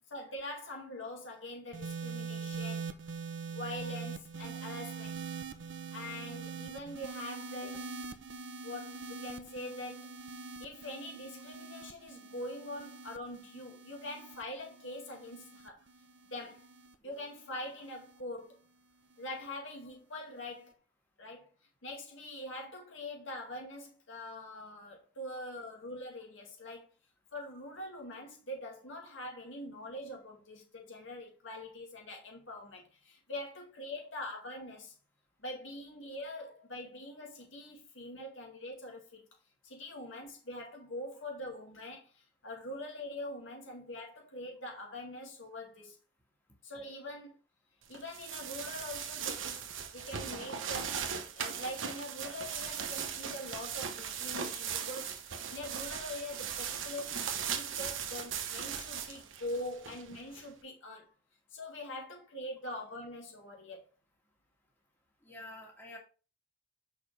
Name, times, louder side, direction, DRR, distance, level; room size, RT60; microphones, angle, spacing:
voice 1, 0.1-2.9 3.5-5.2 5.9-7.8 8.6-10.2 10.6-15.8 16.3-16.7 17.0-18.6 19.2-20.7 21.2-21.5 21.8-26.9 27.3-34.9 35.4-39.2 39.6-46.0 46.6-47.3 47.9-49.6 49.9-51.0 51.3-61.1 61.5-63.8, left 1 dB, 80° left, 2.2 m, -43 dB
sound 1, 1.7-18.2 19.1-19.5, right 5 dB, 65° right, 0.7 m, -43 dB
sound 2, 47.9-60.4, right 7 dB, 80° right, 1.0 m, -38 dB
voice 2, 65.2-66.0, left 2 dB, 10° left, 1.8 m, -49 dB
6.6 x 5.2 x 3.3 m
head